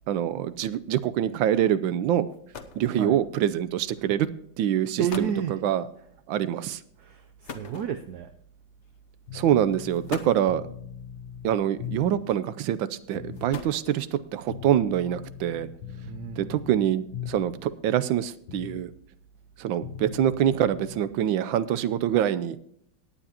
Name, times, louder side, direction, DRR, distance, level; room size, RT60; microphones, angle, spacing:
voice 1, 0.1-2.3 2.8-4.3 4.6-5.8 6.3-6.8 9.3-10.7 11.4-15.7 16.4-18.9 19.6-22.6, right 10 dB, 85° right, 14 dB, 1.4 m, -25 dB
sound 1, 2.3-2.9 3.9-4.1 4.8-4.9 5.1-5.5 7.5-8.3 9.3-9.4 9.9-10.6 11.8-12.3 13.2-14.2, left 5 dB, 45° left, 1.0 m, -41 dB
voice 2, 5.0-5.6 6.0-6.1 7.0-8.3 16.1-16.6, right 8 dB, 70° right, 8 dB, 1.0 m, -31 dB
sound 2, 9.3-12.3 13.2-13.6 14.5-17.7 18.5-18.9 19.8-21.1, left 8 dB, 70° left, 1.6 m, -40 dB
18.0 x 9.9 x 2.9 m, 0.69 s
omnidirectional pair, 2.1 m